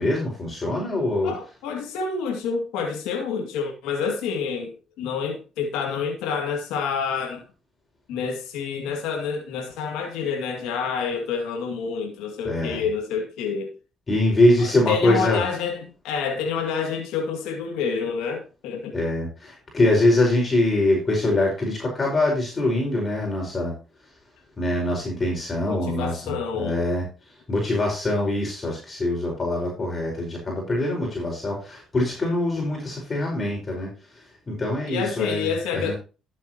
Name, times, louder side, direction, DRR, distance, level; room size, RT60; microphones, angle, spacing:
voice 1, 0.0-1.3 12.4-12.8 14.1-15.4 18.9-23.7 24.6-27.0 27.5-33.9 34.5-35.9, left 1 dB, 30° left, 5.0 m, -23 dB
voice 2, 1.2-7.4 8.1-13.7 14.6-19.0 25.7-26.8 34.9-35.9, left 6 dB, 90° left, 2.4 m, -28 dB
12.5 x 7.9 x 2.9 m
cardioid pair, 85°, 0 cm